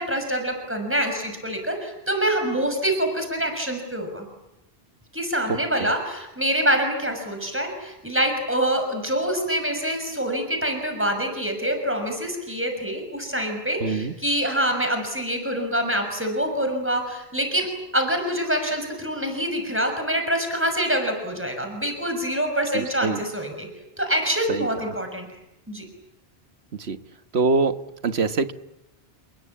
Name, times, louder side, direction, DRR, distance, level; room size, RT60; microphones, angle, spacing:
voice 1, 0.0-4.3 5.1-17.7 17.9-23.7 24.0-25.3 25.7-25.8, right 1 dB, 10° right, 5 dB, 6.2 m, -25 dB
voice 2, 5.5-5.9 13.8-14.1 22.7-23.2 24.5-24.7 26.7-27.0 27.3-27.8 28.0-28.5, right 4 dB, 85° right, 10 dB, 1.6 m, -24 dB
29.0 x 22.0 x 8.6 m, 0.89 s
omnidirectional pair, 1.1 m